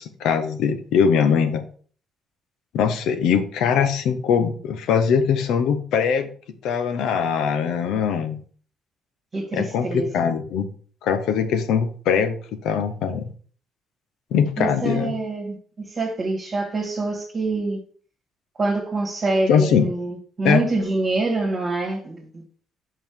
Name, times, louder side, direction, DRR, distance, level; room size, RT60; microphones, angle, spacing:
voice 1, 0.0-1.6 2.7-6.3 6.6-8.4 9.5-10.7 11.0-12.4 12.6-13.3 14.3-15.1 19.5-19.8 20.4-20.6, left 7 dB, 85° left, 1.0 m, -21 dB
voice 2, 9.3-10.3 14.6-17.8 18.6-22.4, right 2 dB, 35° right, 1.6 m, -26 dB
5.6 x 5.5 x 4.6 m
cardioid pair, 125°, 0 cm